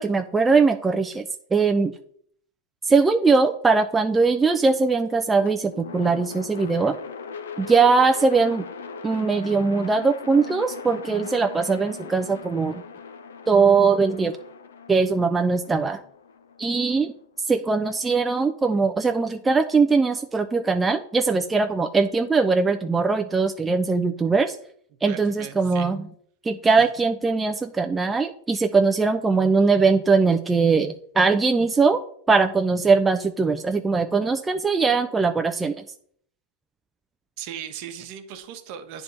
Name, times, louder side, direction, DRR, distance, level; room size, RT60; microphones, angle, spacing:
voice 1, 0.0-1.9 2.9-7.0 7.6-8.6 9.0-12.8 13.5-14.3 14.9-16.0 16.6-17.1 17.5-24.6 25.0-26.0 26.5-32.0 32.3-35.8, right 4 dB, 15° right, 7 dB, 0.3 m, -21 dB
sound 1, 5.4-17.5, left 5 dB, 85° left, 0.5 m, -39 dB
voice 2, 25.1-25.9 37.4-39.0, right 9 dB, 55° right, 8 dB, 0.9 m, -38 dB
9.2 x 3.4 x 4.0 m, 0.63 s
hypercardioid pair, 120°, 0 cm